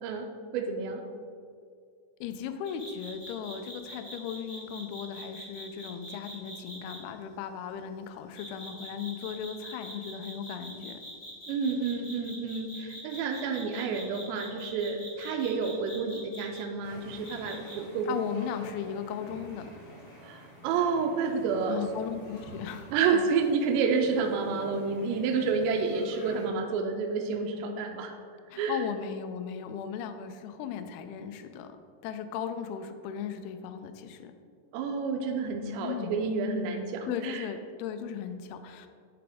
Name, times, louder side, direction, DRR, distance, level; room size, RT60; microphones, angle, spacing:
voice 1, 0.5-1.0 11.5-18.2 20.2-21.8 22.9-28.1 28.6-28.8 34.7-37.4, right 5 dB, 85° right, 3 dB, 2.7 m, -29 dB
voice 2, 2.2-11.0 18.1-19.7 21.7-23.3 28.5-31.8 32.0-34.3 35.8-36.3 37.1-38.9, left 8 dB, 90° left, 8 dB, 2.2 m, -37 dB
sound 1, 2.6-7.0 8.3-16.6 17.2-17.8, equal, 50° left, 1.3 m, -44 dB
sound 2, 16.8-26.5, left 1 dB, 65° left, 3.9 m, -49 dB
8.6 x 5.8 x 3.5 m, 2.3 s
omnidirectional pair, 5.1 m